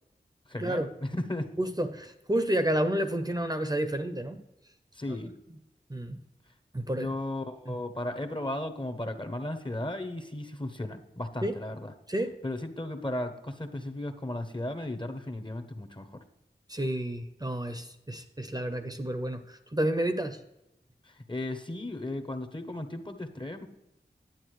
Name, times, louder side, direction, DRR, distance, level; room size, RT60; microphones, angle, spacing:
voice 1, 0.5-1.5 4.9-5.3 7.0-11.9 12.4-16.2 21.0-23.7, left 1 dB, 25° left, 7 dB, 0.9 m, -35 dB
voice 2, 1.6-4.4 5.1-5.2 5.9-6.2 6.7-7.1 7.7-7.8 11.4-11.5 12.1-12.4 16.7-20.4, right 1 dB, 20° right, 8 dB, 0.7 m, -30 dB
10.5 x 8.5 x 3.1 m, 0.87 s
wide cardioid pair, 50°, 18 cm